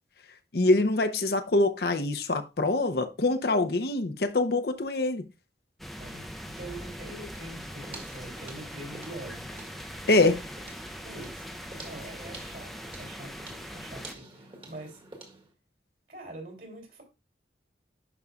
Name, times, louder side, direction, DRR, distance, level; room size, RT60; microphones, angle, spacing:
voice 1, 0.5-5.2 10.1-10.4, left 2 dB, 60° left, 0.7 m, -24 dB
sound 1, 5.8-14.1, equal, ahead, 0.6 m, -41 dB
voice 2, 5.9-9.5 11.0-15.0 16.1-17.0, right 1 dB, 55° right, 3.2 m, -44 dB
sound 2, 7.3-15.5, right 2 dB, 30° right, 1.7 m, -49 dB
11.0 x 5.4 x 2.4 m
head